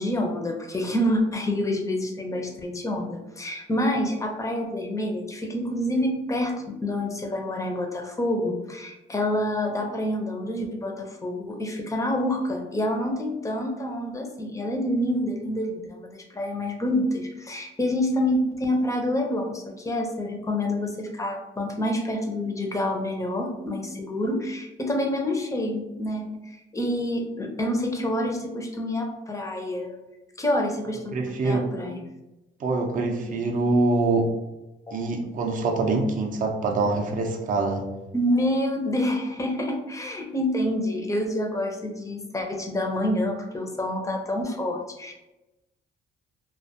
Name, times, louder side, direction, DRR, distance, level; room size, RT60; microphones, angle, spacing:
voice 1, 0.0-30.0 30.4-31.1 31.4-32.0 33.0-33.2 33.9-34.0 34.9-35.0 35.3-35.4 38.1-45.1, left 1 dB, 15° left, 3 dB, 0.5 m, -27 dB
voice 2, 31.1-31.7 32.6-34.3 34.9-37.9, right 3 dB, 40° right, 2 dB, 0.4 m, -24 dB
2.4 x 2.2 x 2.7 m, 0.98 s
cardioid pair, 90°, 20 cm